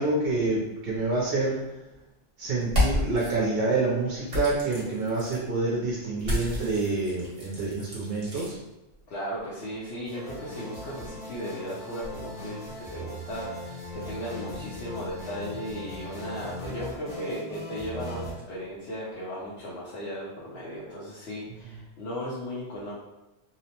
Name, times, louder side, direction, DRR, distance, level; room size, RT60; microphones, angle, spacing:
voice 1, 0.0-1.8 2.4-8.6 21.6-21.8, right 3 dB, 65° right, -4 dB, 0.8 m, -27 dB
sound 1, 2.6-3.3 4.3-5.4 6.2-8.5, left 1 dB, 40° right, 1.0 m, -30 dB
voice 2, 9.1-22.9, equal, 70° left, -7 dB, 0.9 m, -36 dB
sound 2, 10.0-18.3, left 1 dB, 40° left, 0.8 m, -39 dB
2.8 x 2.0 x 2.8 m, 0.96 s
omnidirectional pair, 1.1 m